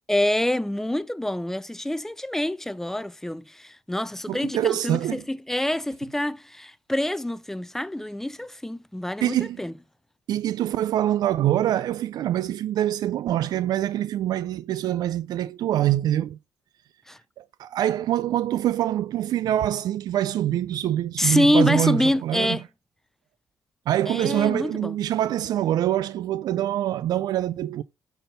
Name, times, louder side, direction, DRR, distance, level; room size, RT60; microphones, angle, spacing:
voice 1, 0.1-9.7 17.1-17.2 21.2-22.6 24.1-24.9, left 1 dB, 5° left, 0.5 m, -26 dB
voice 2, 4.3-5.2 9.2-9.6 10.3-16.4 17.4-22.6 23.9-27.8, right 12 dB, 70° right, 0.4 m, -25 dB
9.1 x 4.3 x 5.4 m
cardioid pair, 125°, 7 cm